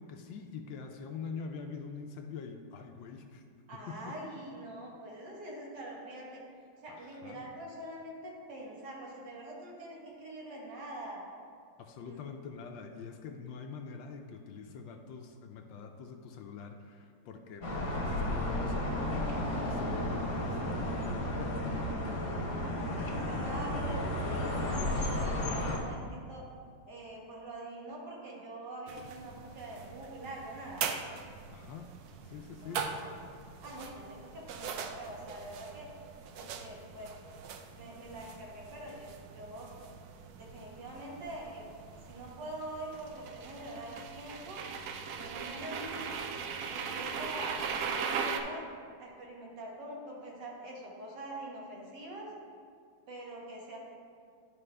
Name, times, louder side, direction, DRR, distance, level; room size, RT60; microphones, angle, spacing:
voice 1, 0.0-3.4 3.9-4.1 6.9-7.5 11.8-21.9 31.5-32.0 32.2-32.9, left 5 dB, 75° left, 5 dB, 1.2 m, -45 dB
voice 2, 3.7-6.4 6.8-11.2 12.1-12.2 23.1-26.4 26.9-30.8 32.6-33.1 33.6-35.9 36.3-37.1 37.7-39.7 40.3-41.7 42.1-44.6 45.1-46.2 46.7-48.7 49.0-52.3 53.1-53.8, right 1 dB, 60° right, -3 dB, 1.9 m, -44 dB
sound 1, 17.6-25.8, left 1 dB, 45° left, 1.2 m, -33 dB
sound 2, 28.9-48.4, right 6 dB, 85° right, 0.8 m, -40 dB
11.0 x 5.1 x 3.3 m, 2.2 s
omnidirectional pair, 2.2 m